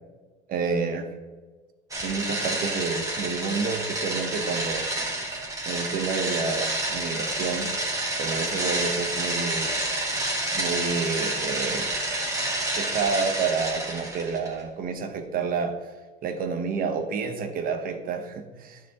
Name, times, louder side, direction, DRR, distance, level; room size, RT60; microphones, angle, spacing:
voice 1, 0.5-1.1 2.0-4.9 5.7-7.7 8.2-9.7 10.5-11.9 12.7-15.7 16.2-18.8, right 5 dB, 50° right, 6 dB, 1.1 m, -29 dB
sound 1, 1.9-14.5, right 1 dB, 15° right, 1.7 m, -29 dB
9.7 x 6.1 x 3.0 m, 1.3 s
supercardioid pair, 105°, 19 cm